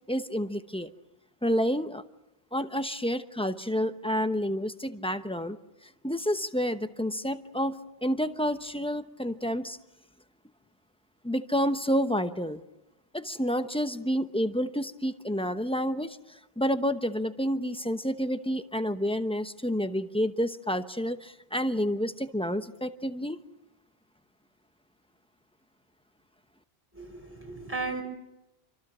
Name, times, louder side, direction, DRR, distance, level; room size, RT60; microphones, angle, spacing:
voice 1, 0.1-0.9 1.4-2.0 2.5-5.6 6.0-9.8 11.2-12.6 13.1-23.4, equal, 5° left, 9 dB, 0.8 m, -29 dB
voice 2, 26.9-28.0, right 3 dB, 10° right, 2 dB, 5.6 m, -35 dB
27.0 x 25.0 x 6.2 m, 0.95 s
omnidirectional pair, 1.1 m